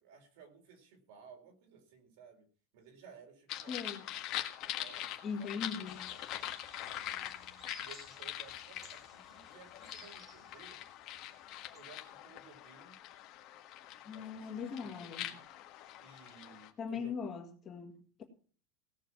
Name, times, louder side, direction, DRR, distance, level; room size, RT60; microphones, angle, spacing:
voice 1, 0.0-2.5 2.7-4.2 4.6-6.3 6.8-10.8 11.7-13.0 13.9-15.5 16.0-17.2, right 6 dB, 60° right, 4.1 m, -58 dB
sound 1, 3.5-16.7, left 13 dB, 35° left, 1.6 m, -44 dB
voice 2, 3.7-4.1 5.2-6.1 14.1-15.3 16.8-18.2, left 6 dB, 20° left, 2.0 m, -40 dB
sound 2, 5.9-11.8, right 1 dB, 15° right, 2.3 m, -59 dB
17.5 x 6.7 x 7.6 m
supercardioid pair, 180°, 0 cm